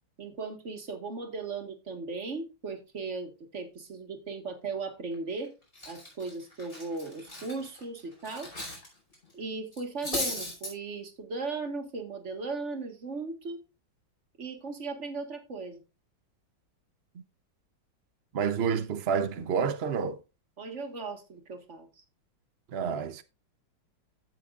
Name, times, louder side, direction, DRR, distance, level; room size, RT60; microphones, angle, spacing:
voice 1, 0.2-5.5 5.9-8.5 9.3-13.6 14.4-15.8 20.6-21.9, right 4 dB, 40° right, 1.8 m, -37 dB
Cutlery silverware, 5.1-5.4 5.7-8.9 9.1-9.3 9.7-10.7, left 1 dB, 25° left, 5.3 m, -37 dB
voice 2, 18.3-20.2 22.7-23.2, right 6 dB, 80° right, 0.5 m, -29 dB
15.5 x 6.2 x 2.5 m
omnidirectional pair, 2.2 m